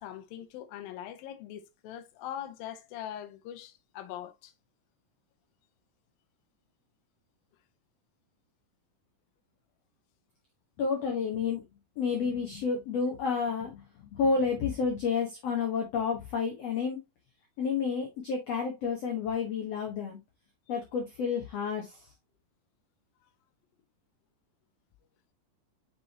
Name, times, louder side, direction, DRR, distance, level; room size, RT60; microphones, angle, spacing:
voice 1, 0.0-4.5, left 11 dB, 75° left, 2.5 m, -42 dB
voice 2, 10.8-11.6 12.0-17.0 17.6-20.2 20.7-22.1, left 5 dB, 55° left, 1.9 m, -30 dB
6.3 x 6.1 x 2.8 m
omnidirectional pair, 4.3 m